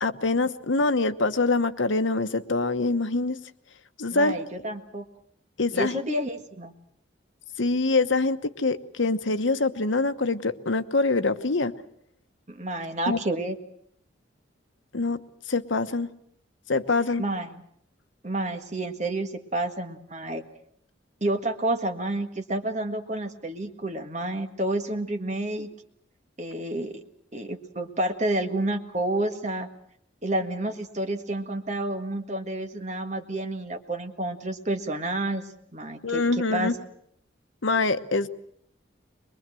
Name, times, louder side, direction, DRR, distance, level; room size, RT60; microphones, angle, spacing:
voice 1, 0.0-3.4 4.0-4.4 5.6-6.0 7.6-11.7 13.1-13.2 14.9-15.2 15.5-16.1 16.7-17.2 36.0-36.7 37.6-38.3, left 3 dB, 80° left, 10 dB, 1.1 m, -24 dB
voice 2, 4.1-5.1 5.7-6.7 12.5-13.6 17.2-17.6 18.2-20.4 21.2-25.7 26.4-27.0 27.3-29.7 30.2-35.4 35.7-36.7, right 1 dB, 35° right, 5 dB, 1.7 m, -29 dB
23.0 x 22.0 x 7.7 m, 0.68 s
head